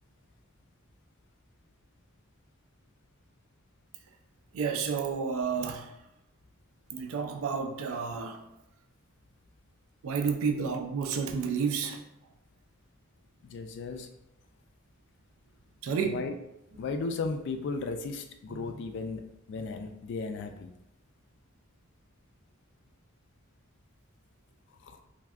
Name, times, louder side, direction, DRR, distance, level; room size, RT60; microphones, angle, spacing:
voice 1, 4.5-5.9 6.9-8.4 10.0-12.0 15.8-16.2 18.6-18.7, right 5 dB, 75° right, 6 dB, 0.4 m, -31 dB
voice 2, 13.4-14.1 16.0-16.4 16.8-20.7 24.8-25.0, left 4 dB, 55° left, 6 dB, 0.3 m, -35 dB
3.3 x 2.5 x 2.3 m, 0.85 s
head